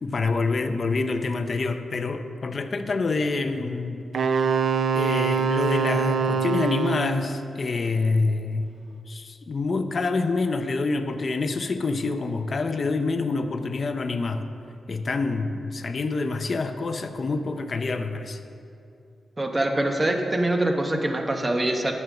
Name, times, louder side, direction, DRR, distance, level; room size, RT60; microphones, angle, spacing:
voice 1, 0.0-4.0 4.9-8.6 9.1-14.5 14.9-18.4, left 3 dB, 40° left, 7 dB, 0.6 m, -27 dB
Wind instrument woodwind instrument, 4.1-7.3, right 5 dB, 65° right, 0.5 m, -24 dB
voice 2, 19.4-21.9, right 1 dB, 20° right, 3 dB, 0.9 m, -24 dB
11.0 x 6.9 x 7.1 m, 2.6 s
wide cardioid pair, 150°, 0 cm